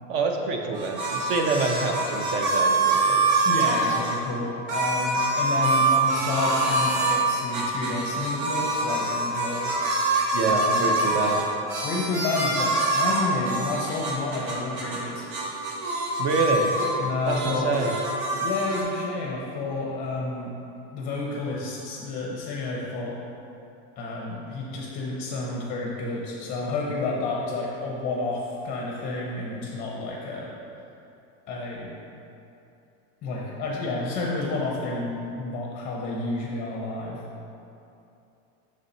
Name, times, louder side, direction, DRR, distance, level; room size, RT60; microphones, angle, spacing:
voice 1, 0.1-3.2 10.3-11.4 16.2-16.7 17.3-18.0, right 3 dB, 35° right, 3 dB, 0.4 m, -26 dB
sound 1, 0.7-4.2 4.7-7.2 7.5-15.0 15.3-16.9 17.2-18.8, right 2 dB, 85° right, 1.2 m, -25 dB
voice 2, 3.4-9.7 10.5-10.9 11.8-15.3 17.0-17.7 18.4-20.5 20.9-23.2 24.0-30.5 31.5-31.9 33.2-37.2, left 3 dB, 20° left, -3 dB, 0.6 m, -30 dB
6.2 x 4.0 x 4.1 m, 2.8 s
supercardioid pair, 165°, 41 cm